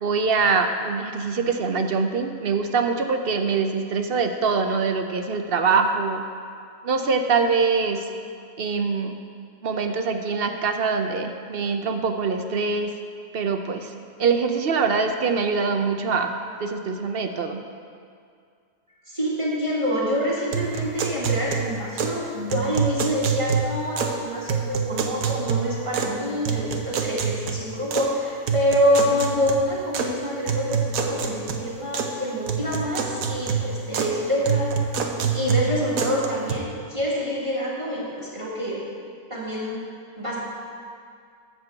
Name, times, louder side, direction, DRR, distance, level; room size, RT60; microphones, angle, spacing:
voice 1, 0.0-6.2 6.8-8.0 8.6-9.2 9.6-12.9 13.3-13.9 14.2-16.3 16.6-17.6, right 5 dB, 55° right, 6 dB, 0.7 m, -24 dB
voice 2, 19.1-34.8 35.3-38.8 39.3-39.8 40.2-40.4, equal, 20° right, -6 dB, 1.9 m, -26 dB
sound 1, 20.5-22.2 22.5-24.2 24.5-26.2 26.5-28.1 28.5-30.1 30.5-32.2 32.5-34.2 34.5-36.5, right 6 dB, 80° right, 1.3 m, -27 dB
12.5 x 4.5 x 7.7 m, 2.3 s
omnidirectional pair, 1.5 m